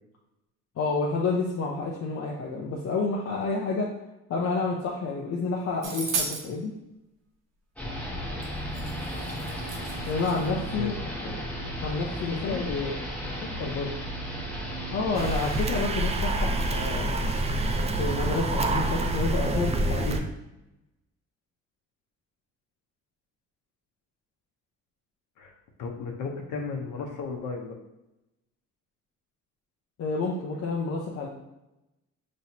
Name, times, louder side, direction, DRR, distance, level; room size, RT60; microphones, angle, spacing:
voice 1, 0.8-3.9 4.3-6.7 10.1-11.0 11.8-12.6 14.9-17.1 18.0-20.3 30.0-31.3, left 3 dB, 50° left, -3 dB, 0.7 m, -29 dB
sound 1, 5.8-6.4 8.4-8.5 8.7-10.5, right 4 dB, 90° right, 1.1 m, -34 dB
sound 2, 7.8-15.6, equal, 5° left, 1.1 m, -34 dB
voice 2, 12.3-13.0 13.3-13.9 25.4-25.5 25.8-27.7, left 4 dB, 85° left, 2 dB, 0.9 m, -34 dB
sound 3, 15.1-20.2, right 2 dB, 20° right, 0.4 m, -27 dB
5.6 x 3.1 x 2.8 m, 0.94 s
cardioid pair, 120°, 31 cm